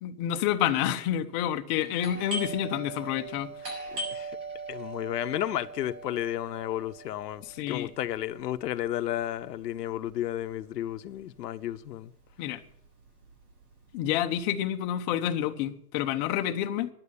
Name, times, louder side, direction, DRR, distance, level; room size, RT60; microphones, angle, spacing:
voice 1, 0.0-3.5 7.4-7.9 12.4-12.6 13.9-16.9, left 11 dB, 30° left, 0.8 m, -29 dB
Doorbell, 2.0-11.4 11.6-11.7 12.4-12.7 13.0-14.4, right 2 dB, 75° right, 7.2 m, -40 dB
voice 2, 3.9-4.4 4.7-12.1, left 12 dB, 90° left, 0.9 m, -33 dB
10.5 x 8.3 x 8.7 m
supercardioid pair, 155°, 47 cm